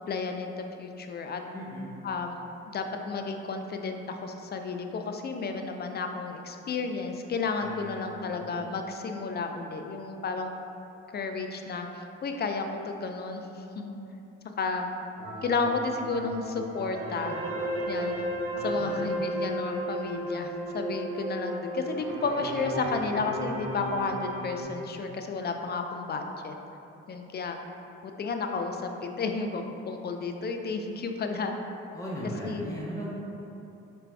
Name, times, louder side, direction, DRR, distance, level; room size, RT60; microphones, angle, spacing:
voice 1, 0.1-1.4 2.0-2.4 2.7-10.5 11.1-13.4 13.8-14.0 14.6-14.9 15.4-17.4 17.9-18.1 18.6-26.6 27.1-27.6 28.0-31.5 32.4-32.6, left 4 dB, 35° left, 5 dB, 0.4 m, -32 dB
voice 2, 1.5-1.9 7.6-8.6 18.5-19.0 31.9-33.1, equal, 10° left, -6 dB, 0.8 m, -38 dB
sound 1, 15.2-24.6, right 1 dB, 80° right, 0.7 m, -34 dB
4.4 x 2.5 x 3.4 m, 2.9 s
hypercardioid pair, 55°, 31 cm